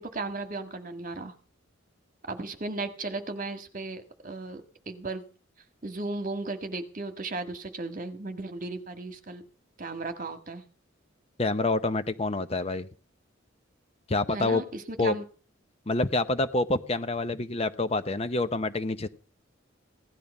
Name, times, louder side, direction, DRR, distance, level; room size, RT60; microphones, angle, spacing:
voice 1, 0.0-1.4 2.3-5.2 5.8-9.4 9.8-10.6 14.3-15.2, right 2 dB, 40° right, 7 dB, 1.7 m, -35 dB
voice 2, 11.4-12.9 14.1-14.6 15.0-15.1 15.9-19.1, left 2 dB, 30° left, 11 dB, 0.7 m, -27 dB
16.5 x 11.0 x 5.4 m, 0.38 s
head